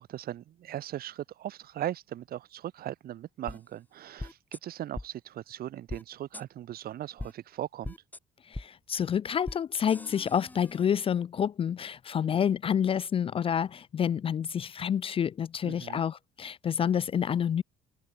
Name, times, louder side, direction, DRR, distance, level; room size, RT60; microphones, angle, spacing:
voice 1, 0.0-8.0 15.6-16.0, right 12 dB, 60° right, 2.6 m, -38 dB
sound 1, 3.5-3.6 4.2-4.6 4.9-5.1 5.9-6.0 6.3-6.4 7.2-7.3 7.8-8.2 8.5-8.7 9.4-9.6 9.9-10.8, left 2 dB, 10° left, 3.1 m, -40 dB
voice 2, 8.5-17.6, left 8 dB, 35° left, 0.4 m, -28 dB
open air
cardioid pair, 110°, 17 cm